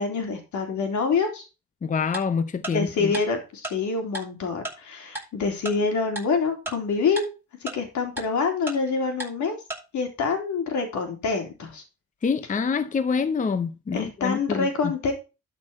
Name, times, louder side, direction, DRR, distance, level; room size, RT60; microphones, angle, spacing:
voice 1, 0.0-1.4 2.7-7.3 7.6-9.6 9.9-11.8 13.9-15.1, left 4 dB, 70° left, 3.7 m, -26 dB
voice 2, 1.8-3.2 12.2-14.9, left 5 dB, 25° left, 0.7 m, -26 dB
Tick-tock, 2.1-2.2 2.6-2.7 3.1-3.2 3.6-3.7 4.1-4.2 4.6-4.7 5.1-5.2 5.6-5.7 6.1-6.2 6.6-6.7 7.2-7.3 7.7-7.8 8.2-8.3 8.7-8.8 9.2-9.3 9.7-9.8, right 2 dB, 5° right, 7.1 m, -32 dB
12.5 x 6.0 x 4.3 m
cardioid pair, 90°, 30 cm